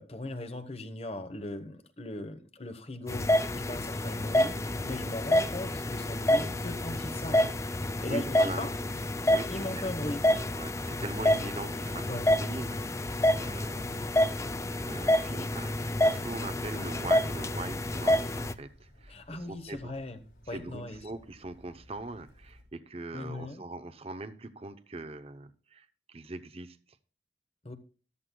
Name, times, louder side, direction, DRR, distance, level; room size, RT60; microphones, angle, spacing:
voice 1, 0.0-4.6 4.8-7.5 8.0-8.7 9.5-10.5 12.0-12.3 19.1-20.2 20.5-21.0 23.1-23.6 27.6-27.7, left 2 dB, 35° left, 1.1 m, -38 dB
sound 1, 3.1-18.5, left 1 dB, 15° left, 0.4 m, -28 dB
sound 2, 7.2-22.6, equal, 70° left, 4.8 m, -58 dB
voice 2, 8.1-8.7 9.3-9.8 10.6-14.3 14.8-20.0 20.5-26.8, right 2 dB, 35° right, 0.7 m, -41 dB
14.0 x 13.0 x 2.3 m
head